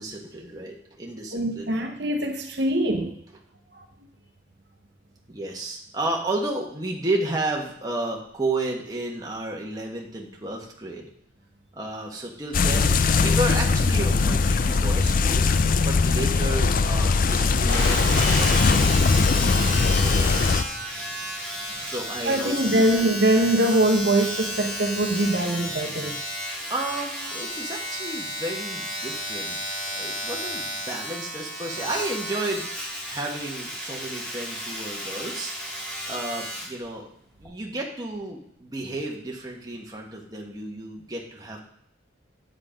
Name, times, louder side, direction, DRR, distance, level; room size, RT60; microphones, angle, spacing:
voice 1, 0.0-1.8 5.3-11.0 11.7-19.0 19.4-20.4 21.8-22.9 26.7-29.6 29.9-32.7 33.1-35.5 36.1-37.1 37.4-41.6, right 2 dB, 20° right, -1 dB, 1.4 m, -32 dB
voice 2, 1.3-3.1 3.7-3.8 22.2-26.2, right 1 dB, 60° right, 4 dB, 1.1 m, -23 dB
sound 1, 12.5-20.6, left 4 dB, 45° left, 0.4 m, -20 dB
sound 2, 17.6-25.3 25.5-25.6, left 1 dB, 60° left, 3.6 m, -35 dB
Domestic sounds home sounds, 17.8-36.8 37.5-37.6, equal, 5° left, 2.5 m, -33 dB
9.6 x 7.7 x 5.1 m, 0.70 s
head